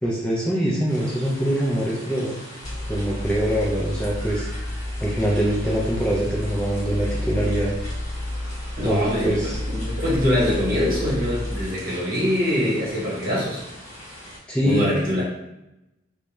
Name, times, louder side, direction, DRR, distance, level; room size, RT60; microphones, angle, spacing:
voice 1, 0.0-2.3 2.9-4.5 5.0-7.7 8.8-9.6 14.5-14.9, equal, 5° left, -6 dB, 0.3 m, -23 dB
sound 1, 0.9-14.4, left 1 dB, 40° left, 1.0 m, -42 dB
sound 2, 2.6-11.7, left 1 dB, 85° right, 0.5 m, -30 dB
voice 2, 8.8-13.6 14.6-15.2, left 1 dB, 50° right, -6 dB, 1.0 m, -24 dB
2.2 x 2.1 x 2.9 m, 0.90 s
head